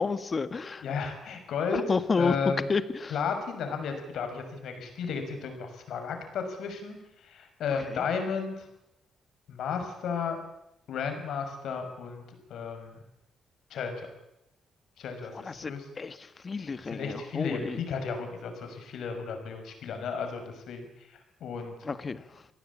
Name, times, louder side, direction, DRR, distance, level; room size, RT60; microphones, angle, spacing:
voice 1, 0.0-0.8 1.7-3.2 7.9-8.1 15.3-17.8 21.8-22.5, left 4 dB, 35° left, 12 dB, 1.6 m, -31 dB
voice 2, 0.8-1.8 2.2-2.7 3.1-8.7 9.5-10.4 10.9-12.2 12.5-13.0 13.7-14.1 15.0-15.8 16.6-21.7, left 5 dB, 75° left, 6 dB, 6.1 m, -34 dB
27.5 x 18.0 x 8.6 m, 0.86 s
cardioid pair, 105°, 0 cm